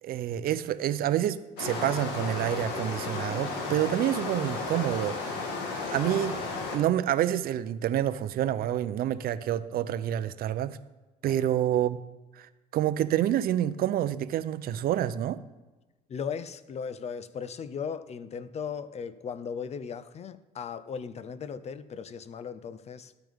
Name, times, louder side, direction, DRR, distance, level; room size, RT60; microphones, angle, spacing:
voice 1, 0.0-5.4 5.8-6.4 6.7-10.8 11.2-12.0 12.4-15.4, right 11 dB, 60° right, 0.6 m, -28 dB
sound 1, 1.6-6.8, left 3 dB, 85° left, 1.9 m, -33 dB
voice 2, 16.1-23.1, left 6 dB, 40° left, 0.6 m, -37 dB
12.5 x 9.1 x 3.6 m
cardioid pair, 110°, 17 cm